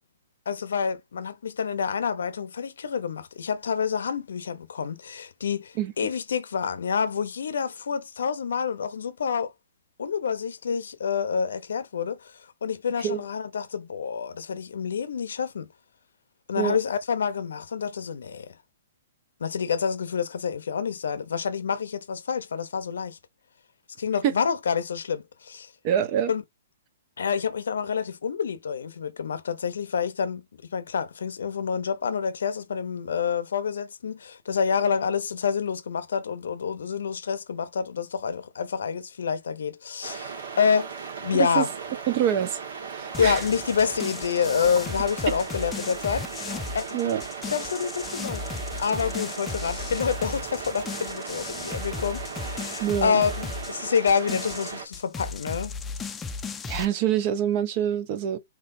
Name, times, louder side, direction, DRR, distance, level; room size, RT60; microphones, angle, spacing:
voice 1, 0.5-9.5 10.0-15.7 16.5-18.6 19.4-23.2 24.0-25.7 26.3-26.4 27.2-30.4 30.7-40.9 41.2-41.7 43.2-47.0 47.5-48.5 48.8-55.7, left 6 dB, 80° left, 0.6 m, -28 dB
voice 2, 25.8-26.3 41.3-41.6 42.1-42.6 42.9-43.4 46.9-47.2 52.8-53.2 56.7-58.4, right 9 dB, 40° right, 0.8 m, -25 dB
sound 1, 40.0-54.9, right 6 dB, 70° right, 1.5 m, -37 dB
sound 2, 43.1-56.9, left 4 dB, 15° left, 0.5 m, -36 dB
3.8 x 3.0 x 2.6 m
hypercardioid pair, 130°, 0 cm